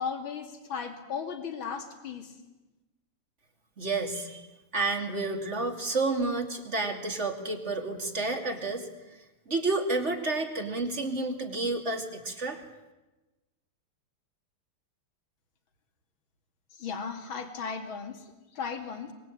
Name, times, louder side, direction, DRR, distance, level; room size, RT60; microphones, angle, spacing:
voice 1, 0.0-2.3 16.7-19.1, left 6 dB, 65° left, 5 dB, 3.2 m, -36 dB
voice 2, 3.8-4.4 4.7-8.9 9.5-12.6, right 3 dB, 30° right, 5 dB, 2.8 m, -30 dB
24.5 x 22.5 x 9.1 m, 1.1 s
omnidirectional pair, 2.4 m